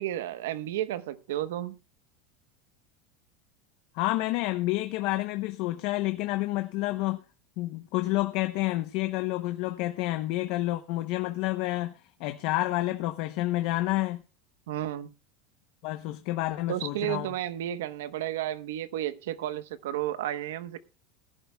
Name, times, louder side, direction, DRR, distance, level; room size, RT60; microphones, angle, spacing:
voice 1, 0.0-1.8 14.7-15.1 16.7-20.8, right 12 dB, 90° right, 1.0 m, -32 dB
voice 2, 3.9-7.2 7.6-14.2 15.8-17.3, left 17 dB, 55° left, 0.8 m, -29 dB
20.5 x 11.0 x 2.3 m
supercardioid pair, 155°, 0 cm